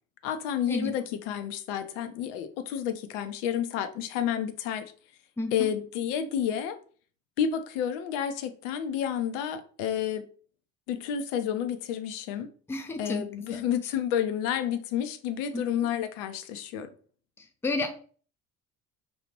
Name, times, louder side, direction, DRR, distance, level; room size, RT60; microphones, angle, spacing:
voice 1, 0.2-4.9 5.5-6.8 7.4-10.3 10.9-12.5 13.0-16.9, left 9 dB, 65° left, 0.5 m, -30 dB
voice 2, 5.4-5.7 12.7-13.2 13.5-13.6 15.5-15.6 17.4-17.9, left 2 dB, 5° left, 0.4 m, -31 dB
2.5 x 2.4 x 3.2 m
figure-of-eight pair, 55°, 40 cm